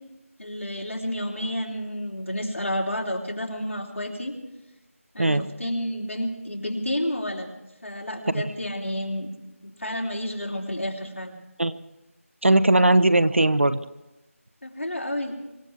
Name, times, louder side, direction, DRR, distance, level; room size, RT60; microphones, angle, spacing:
voice 1, 0.4-4.3 5.1-7.5 7.8-9.3 9.6-11.4 14.6-15.4, left 1 dB, 60° left, -1 dB, 3.1 m, -30 dB
voice 2, 12.4-13.8, right 2 dB, 55° right, 14 dB, 0.6 m, -19 dB
25.5 x 15.5 x 3.5 m, 0.99 s
figure-of-eight pair, 170°, 8 cm